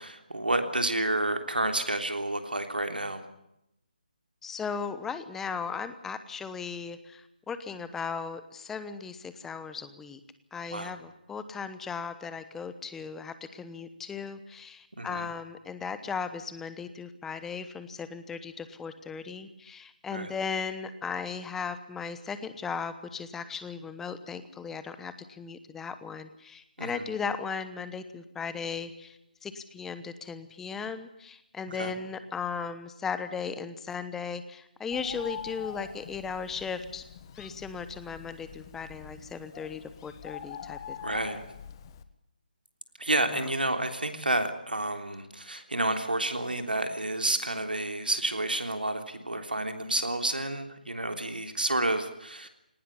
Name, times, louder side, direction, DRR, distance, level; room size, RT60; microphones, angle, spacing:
voice 1, 0.0-3.2 10.7-10.9 15.0-15.3 20.1-20.3 26.8-27.0 31.7-31.9 41.0-41.4 43.0-52.5, right 2 dB, 90° right, 6 dB, 3.4 m, -30 dB
voice 2, 4.4-10.2 10.5-37.0 37.4-41.0, left 5 dB, 5° left, 12 dB, 1.0 m, -37 dB
Bird, 34.9-42.0, left 8 dB, 30° left, 1.4 m, -44 dB
19.0 x 18.0 x 10.0 m, 0.82 s
figure-of-eight pair, 155°, 5 cm